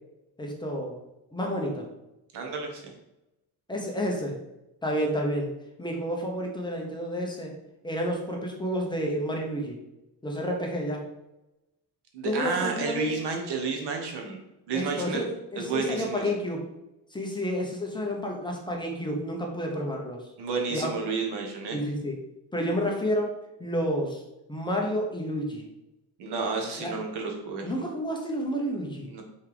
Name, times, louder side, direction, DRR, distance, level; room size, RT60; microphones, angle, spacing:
voice 1, 0.4-1.0 1.3-1.8 3.7-4.4 4.8-5.5 5.8-7.5 7.8-9.8 10.2-11.1 12.2-13.1 14.7-16.7 17.1-20.2 20.7-20.9 21.7-22.2 22.5-23.3 23.6-24.2 24.5-25.6 26.8-26.9 27.6-29.1, equal, 10° left, 0 dB, 1.0 m, -30 dB
voice 2, 2.3-2.8 12.1-14.4 14.7-15.2 15.5-16.2 20.4-21.8 26.2-27.7 29.1-29.2, right 4 dB, 90° right, 2 dB, 1.5 m, -31 dB
5.5 x 3.7 x 4.9 m, 0.92 s
cardioid pair, 155°, 39 cm